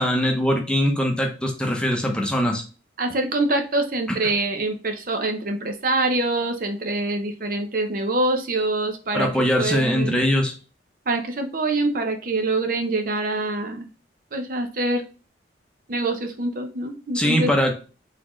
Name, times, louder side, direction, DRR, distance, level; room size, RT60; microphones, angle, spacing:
voice 1, 0.0-2.6 4.1-4.2 9.1-10.5 17.1-17.7, equal, 5° left, 1 dB, 0.8 m, -22 dB
voice 2, 3.0-10.2 11.1-13.9 14.3-15.0 15.9-17.5, right 2 dB, 50° right, 5 dB, 0.7 m, -25 dB
4.2 x 3.7 x 3.0 m, 0.34 s
head